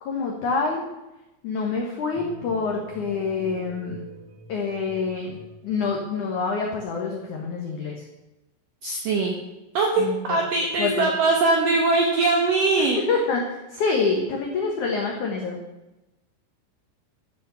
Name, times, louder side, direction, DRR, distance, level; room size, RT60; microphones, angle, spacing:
voice 1, 0.0-0.8 1.4-4.0 4.5-5.4 5.6-8.0 10.0-10.4 10.8-11.1 12.8-15.6, left 4 dB, 85° left, 1 dB, 1.7 m, -26 dB
sound 1, 2.1-6.2, right 1 dB, 60° right, 5.1 m, -44 dB
voice 2, 8.8-9.4 9.7-10.0 10.3-13.0, right 3 dB, 75° right, 1 dB, 2.0 m, -21 dB
13.0 x 6.9 x 6.9 m, 1.0 s
omnidirectional pair, 5.7 m